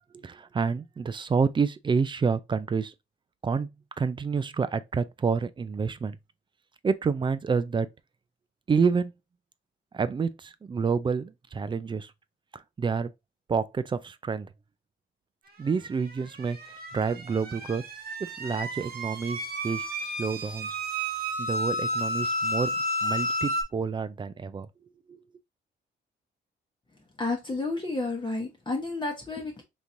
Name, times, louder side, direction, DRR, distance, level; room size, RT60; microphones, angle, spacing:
voice 1, 0.2-2.9 3.4-3.7 4.0-6.2 6.8-7.9 8.7-9.1 9.9-12.1 12.5-13.1 13.5-14.5 15.6-17.8 18.2-20.8 21.4-22.8 23.0-24.7 25.1-25.2, right 5 dB, 25° right, 0.3 m, -28 dB
sound 1, 16.0-23.6, equal, 50° right, 1.0 m, -31 dB
voice 2, 27.2-29.6, left 3 dB, 25° left, 0.9 m, -31 dB
3.7 x 3.0 x 2.5 m
cardioid pair, 90°, 20 cm